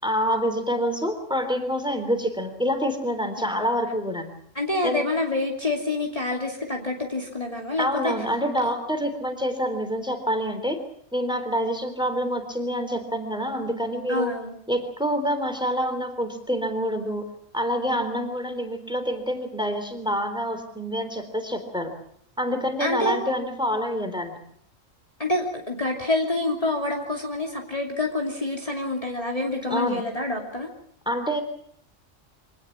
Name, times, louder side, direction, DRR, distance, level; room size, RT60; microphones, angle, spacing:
voice 1, 0.0-4.3 4.8-5.0 7.8-10.8 11.1-14.3 14.7-17.2 17.5-21.9 22.4-24.4 29.7-30.0 31.1-31.4, equal, 5° right, 7 dB, 3.7 m, -27 dB
voice 2, 4.5-8.1 8.6-8.7 14.1-14.6 22.8-23.2 25.2-30.7, left 2 dB, 25° left, 0 dB, 2.8 m, -27 dB
25.0 x 19.0 x 7.4 m, 0.65 s
omnidirectional pair, 1.4 m